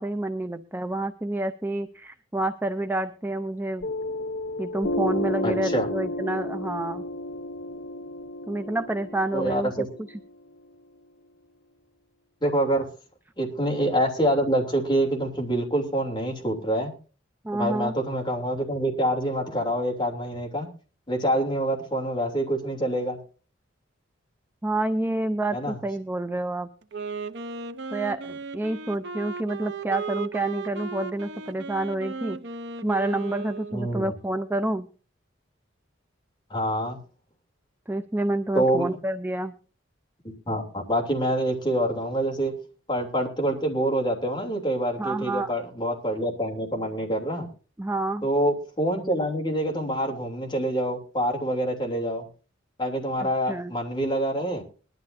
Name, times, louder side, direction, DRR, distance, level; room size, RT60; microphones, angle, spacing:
voice 1, 0.0-3.9 4.6-7.0 8.5-9.9 17.4-17.9 24.6-26.7 27.9-32.4 32.8-34.9 37.9-39.6 45.0-45.5 47.8-48.3 53.2-53.7, right 2 dB, 10° right, 8 dB, 0.5 m, -28 dB
Piano, 3.8-10.9, left 1 dB, 70° left, 1.0 m, -32 dB
voice 2, 5.4-5.9 9.3-9.9 12.4-12.8 13.4-16.9 17.5-20.7 21.1-23.2 25.5-25.8 33.7-34.1 36.5-37.0 38.5-38.9 40.5-42.5 42.9-47.5 48.2-52.3 52.8-54.6, right 1 dB, 25° left, 0 dB, 3.0 m, -26 dB
Wind instrument woodwind instrument, 26.8-34.0, right 4 dB, 60° right, 0.8 m, -36 dB
21.0 x 12.0 x 2.7 m, 0.37 s
head